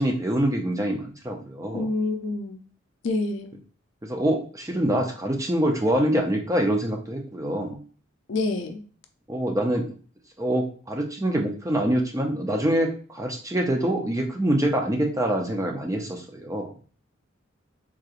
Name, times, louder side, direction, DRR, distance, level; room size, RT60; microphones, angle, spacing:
voice 1, 0.0-1.9 4.0-7.8 9.3-9.9 10.4-16.7, right 1 dB, 15° right, 0.5 m, -25 dB
voice 2, 1.7-2.6 3.0-3.6 8.3-8.8, left 2 dB, 65° left, 0.4 m, -27 dB
3.6 x 2.9 x 2.4 m
head